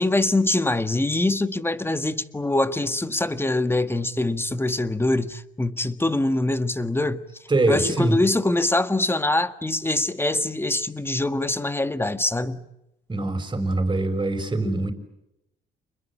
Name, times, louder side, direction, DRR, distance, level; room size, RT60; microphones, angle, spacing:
voice 1, 0.0-7.2 7.7-12.6, left 2 dB, 10° left, 1.7 m, -24 dB
voice 2, 7.5-8.2 13.1-14.9, right 2 dB, 25° right, 6.1 m, -23 dB
30.0 x 21.5 x 8.7 m
cardioid pair, 90°, 20 cm